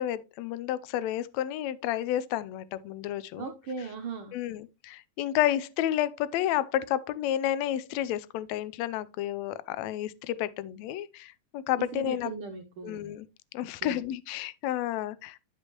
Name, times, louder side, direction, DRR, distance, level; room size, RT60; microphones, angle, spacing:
voice 1, 0.0-3.5 4.3-12.3 12.8-13.3 13.5-15.4, left 12 dB, 75° left, 1.8 m, -31 dB
voice 2, 3.4-4.3 11.8-13.0 13.8-14.0, right 5 dB, 85° right, 1.1 m, -38 dB
11.5 x 5.3 x 2.9 m
omnidirectional pair, 3.4 m